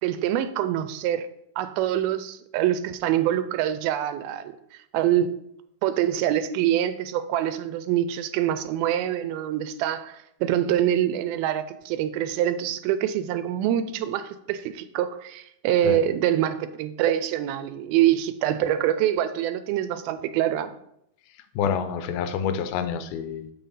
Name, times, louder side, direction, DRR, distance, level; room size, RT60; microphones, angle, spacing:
voice 1, 0.0-1.3 1.6-4.6 4.9-5.4 5.8-20.7, right 11 dB, 85° right, 11 dB, 2.3 m, -25 dB
voice 2, 21.6-23.5, left 7 dB, 80° left, 9 dB, 2.5 m, -27 dB
7.1 x 5.7 x 5.4 m, 0.75 s
omnidirectional pair, 4.4 m